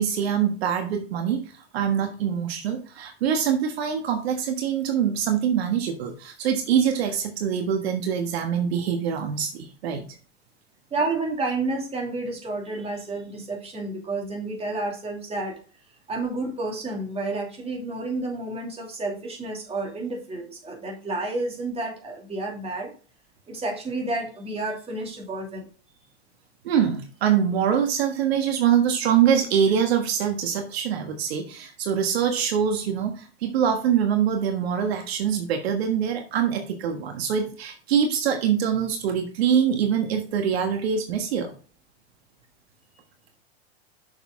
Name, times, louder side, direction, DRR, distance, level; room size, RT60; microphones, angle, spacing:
voice 1, 0.0-1.4 1.7-10.0 26.6-41.5, right 8 dB, 70° right, 5 dB, 1.4 m, -24 dB
voice 2, 10.9-15.5 16.1-22.9 23.5-25.6, right 2 dB, 20° right, 0 dB, 2.6 m, -30 dB
6.5 x 6.5 x 3.7 m, 0.38 s
hypercardioid pair, 110°, 33 cm